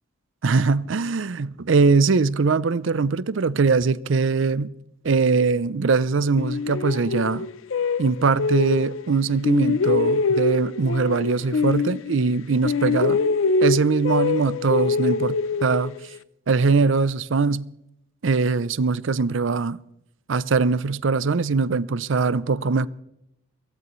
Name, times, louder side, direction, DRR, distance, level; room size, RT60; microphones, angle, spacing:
voice 1, 0.4-4.7 5.0-7.5 8.0-13.2 13.6-15.9 16.5-17.6 18.2-19.8 20.3-22.9, right 4 dB, 65° right, 0.5 m, -21 dB
sound 1, 6.4-9.1 9.4-12.4 12.6-16.2, left 4 dB, 70° left, 0.5 m, -24 dB
23.0 x 16.0 x 3.1 m
head